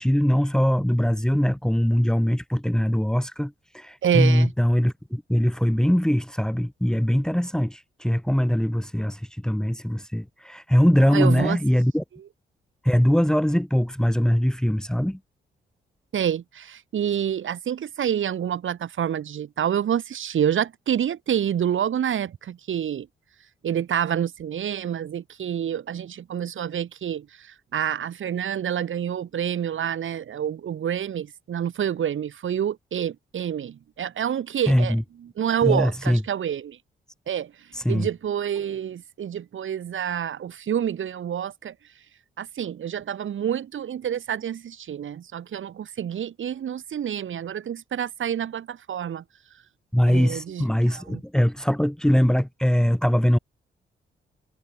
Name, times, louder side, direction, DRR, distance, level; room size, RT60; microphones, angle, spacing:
voice 1, 0.0-12.0 12.8-15.2 34.7-35.0 35.6-36.2 37.7-38.1 49.9-53.4, equal, 5° left, 2.3 m, -22 dB
voice 2, 4.0-4.5 11.1-11.6 16.1-23.1 23.6-34.9 35.4-36.8 37.3-37.5 37.9-41.7 42.4-49.2 50.1-50.6 51.1-51.2, right 9 dB, 75° right, 7.4 m, -27 dB
cardioid pair, 65°, 21 cm